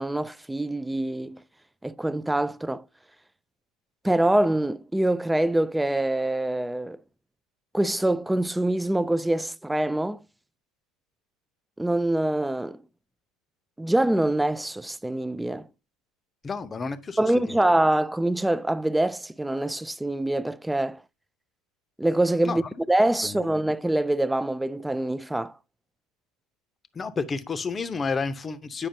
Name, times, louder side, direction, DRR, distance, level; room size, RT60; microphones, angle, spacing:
voice 1, 0.0-1.4 1.8-2.8 4.0-7.0 7.7-10.2 11.8-12.8 13.8-15.7 17.2-21.0 22.0-22.6 22.9-25.5, right 1 dB, 5° right, 0.3 m, -25 dB
voice 2, 16.4-17.7 22.4-22.6 23.2-23.5 26.9-28.9, left 4 dB, 25° left, 0.7 m, -31 dB
8.8 x 4.9 x 2.7 m
hypercardioid pair, 80°, 0 cm